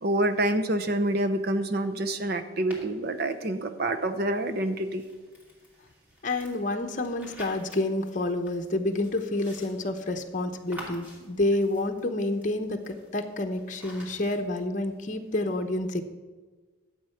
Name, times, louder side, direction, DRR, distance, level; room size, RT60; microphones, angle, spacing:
voice 1, 0.0-5.0, right 1 dB, 50° right, 9 dB, 0.8 m, -27 dB
sound 1, 2.7-3.3 4.4-14.4, equal, 10° right, 2.6 m, -50 dB
voice 2, 6.2-16.0, left 2 dB, 40° left, 4 dB, 0.9 m, -29 dB
12.0 x 8.0 x 5.7 m, 1.3 s
head